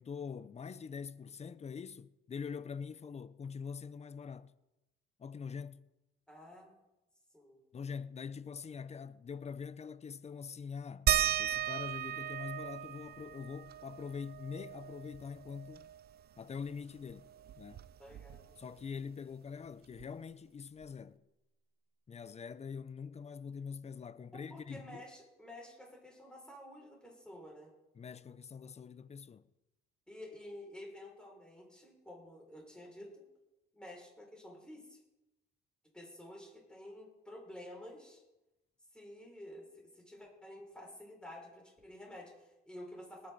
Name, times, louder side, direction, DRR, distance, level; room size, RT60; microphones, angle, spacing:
voice 1, 0.0-4.5 5.2-5.8 7.7-11.1 11.4-15.9 16.4-17.3 17.6-17.8 18.6-21.2 22.1-25.0 27.9-29.4, left 6 dB, 35° left, 0.6 m, -44 dB
voice 2, 6.3-6.8 7.3-7.6 18.0-18.5 24.5-27.7 30.1-33.3 33.7-35.0 35.9-38.2 38.9-43.3, left 1 dB, 5° left, 5.9 m, -51 dB
sound 1, 11.1-16.2 16.5-16.6 17.0-18.7 20.0-20.1 20.8-20.9, right 11 dB, 55° right, 0.5 m, -36 dB
20.0 x 9.7 x 4.1 m
cardioid pair, 90°, 20 cm